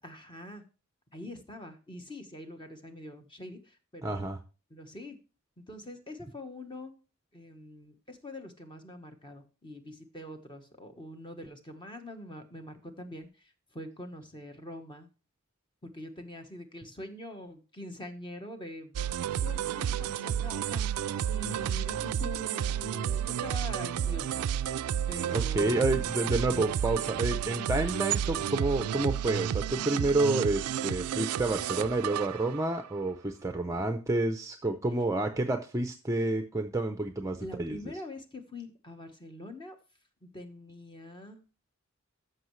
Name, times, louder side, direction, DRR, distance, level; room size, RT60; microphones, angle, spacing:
voice 1, 0.0-0.6 1.1-4.2 4.7-5.2 5.6-6.9 7.3-13.3 13.7-15.1 15.8-19.0 19.4-24.5 25.1-25.9 37.4-39.7 40.2-41.4, left 1 dB, 20° left, 6 dB, 1.1 m, -44 dB
voice 2, 4.0-4.4 25.3-37.8, right 2 dB, 15° right, 6 dB, 0.5 m, -29 dB
sound 1, 18.9-32.9, right 9 dB, 85° right, 0.3 m, -31 dB
13.5 x 5.6 x 3.1 m, 0.33 s
head